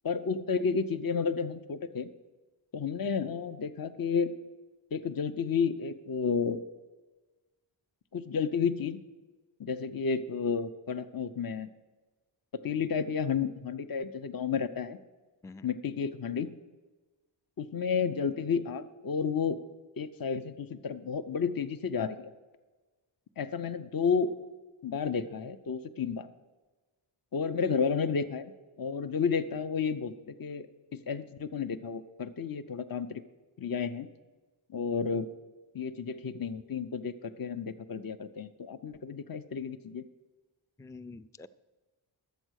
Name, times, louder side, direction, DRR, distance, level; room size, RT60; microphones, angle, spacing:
voice 1, 0.0-2.1 2.7-4.3 4.9-6.6 8.1-9.0 9.6-11.7 12.5-15.0 15.6-16.5 17.6-19.6 20.0-22.3 23.4-24.3 24.8-26.3 27.3-28.5 28.8-30.7 30.9-33.2 33.6-34.1 34.7-35.3 35.7-40.0, left 6 dB, 45° left, 11 dB, 0.6 m, -31 dB
voice 2, 40.8-41.5, left 3 dB, 10° left, 14 dB, 0.3 m, -46 dB
12.0 x 8.1 x 6.4 m, 1.2 s
wide cardioid pair, 45°, 47 cm